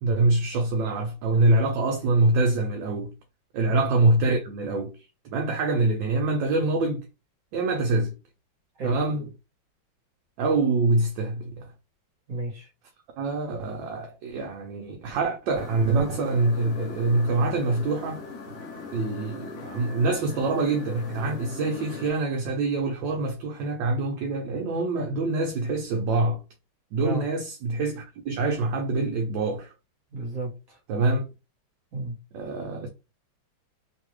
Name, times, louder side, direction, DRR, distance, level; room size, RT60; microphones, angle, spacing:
voice 1, 0.0-3.1 3.5-4.9 5.2-7.0 7.5-8.1 8.8-9.3 10.4-11.7 13.2-18.2 18.9-26.4 26.9-29.7 30.9-31.2 32.3-32.9, right 2 dB, 75° right, 1.3 m, -25 dB
voice 2, 12.3-12.7 27.0-27.2 30.1-30.8 31.9-32.2, right 2 dB, 50° right, 1.5 m, -32 dB
sound 1, 15.5-22.1, left 4 dB, 50° left, 0.9 m, -40 dB
3.4 x 2.3 x 3.0 m
omnidirectional pair, 2.2 m